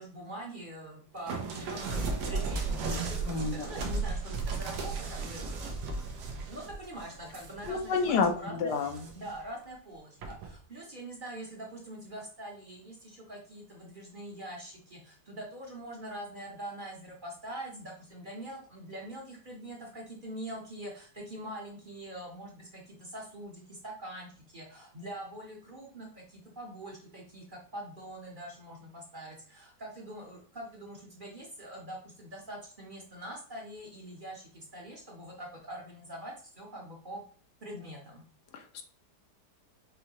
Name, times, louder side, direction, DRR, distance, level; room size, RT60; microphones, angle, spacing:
voice 1, 0.0-2.0 2.3-5.7 6.5-8.7 9.1-37.2 37.6-38.2, right 1 dB, 40° right, -2 dB, 0.8 m, -44 dB
sound 1, 1.3-8.3 8.7-9.4 10.2-10.5, right 3 dB, 80° right, 1.4 m, -35 dB
voice 2, 3.3-3.7 7.7-9.1 38.5-38.8, left 5 dB, 80° left, 5 dB, 1.3 m, -29 dB
5.4 x 2.8 x 2.9 m, 0.43 s
omnidirectional pair, 1.8 m